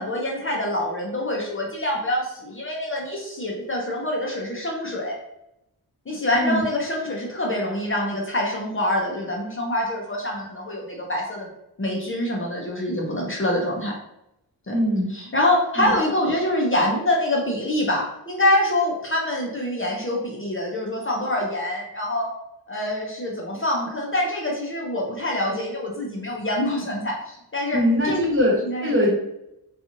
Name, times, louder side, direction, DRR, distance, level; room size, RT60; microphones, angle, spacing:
voice 1, 0.0-5.2 6.1-11.5 11.8-14.0 14.7-14.8 15.1-22.3 22.7-27.8 28.0-28.2 28.6-29.1, left 1 dB, 35° left, -2 dB, 0.5 m, -25 dB
voice 2, 6.3-6.6 14.7-15.1 15.8-15.9 27.7-29.1, equal, 30° right, -4 dB, 1.0 m, -21 dB
2.8 x 2.4 x 2.5 m, 0.84 s
wide cardioid pair, 95°, 38 cm